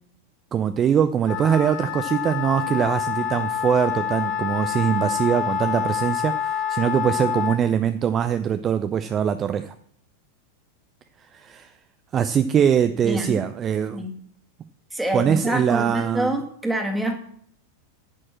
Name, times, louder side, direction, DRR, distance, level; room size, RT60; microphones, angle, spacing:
voice 1, 0.5-9.7 11.3-11.7 12.1-14.1 15.1-16.4, right 8 dB, 25° right, 10 dB, 0.5 m, -22 dB
Wind instrument woodwind instrument, 1.2-7.6, left 9 dB, 35° left, 2.9 m, -27 dB
voice 2, 13.0-13.4 13.9-14.1 14.9-17.2, right 1 dB, 5° right, 3 dB, 1.9 m, -26 dB
8.6 x 6.4 x 7.4 m, 0.64 s
figure-of-eight pair, 90°, 0 cm